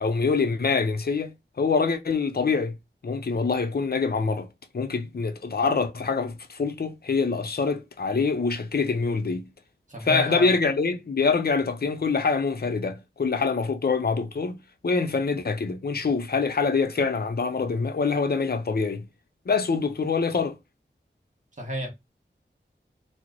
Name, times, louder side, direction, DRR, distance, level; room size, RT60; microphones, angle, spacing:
voice 1, 0.0-2.8 3.0-4.5 4.7-9.5 10.0-14.6 14.8-19.0 19.5-20.6, left 4 dB, 55° left, 0.5 m, -25 dB
voice 2, 9.9-10.5 21.6-21.9, equal, 40° right, 1.2 m, -31 dB
2.9 x 2.0 x 3.8 m
wide cardioid pair, 65°, 20 cm